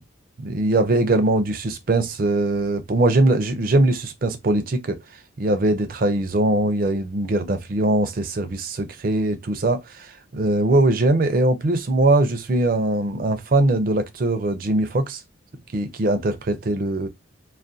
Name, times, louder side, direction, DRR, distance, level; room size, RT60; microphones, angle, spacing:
voice 1, 0.4-5.0 5.4-15.2 15.7-17.1, right 2 dB, 45° right, 0.4 m, -21 dB
2.3 x 2.1 x 2.5 m
head